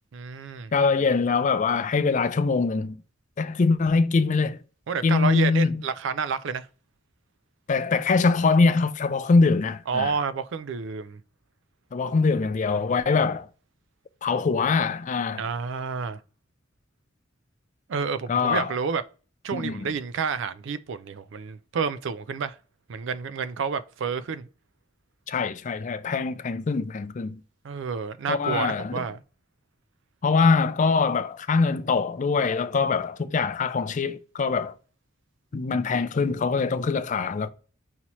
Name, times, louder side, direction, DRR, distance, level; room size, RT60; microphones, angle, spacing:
voice 1, 0.1-0.7 4.9-6.7 9.9-11.2 15.4-16.2 17.9-19.0 19.4-22.6 22.9-24.5 27.6-29.2, right 5 dB, 65° right, 0.4 m, -29 dB
voice 2, 0.7-3.0 3.4-4.6 5.0-5.8 7.7-10.1 11.9-13.5 14.2-15.5 18.3-18.7 19.5-19.9 25.3-27.4 28.3-29.0 30.2-34.7 35.5-37.5, left 4 dB, 40° left, 0.4 m, -23 dB
5.5 x 2.9 x 3.0 m
head